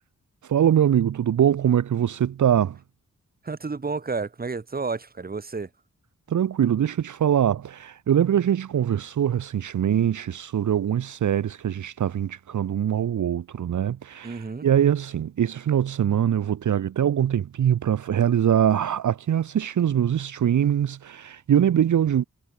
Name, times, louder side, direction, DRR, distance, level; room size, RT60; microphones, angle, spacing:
voice 1, 0.5-2.8 6.3-22.2, right 9 dB, 70° right, 0.6 m, -23 dB
voice 2, 3.4-5.7 14.2-14.7, right 4 dB, 30° right, 1.3 m, -31 dB
wide cardioid pair, 155°, 31 cm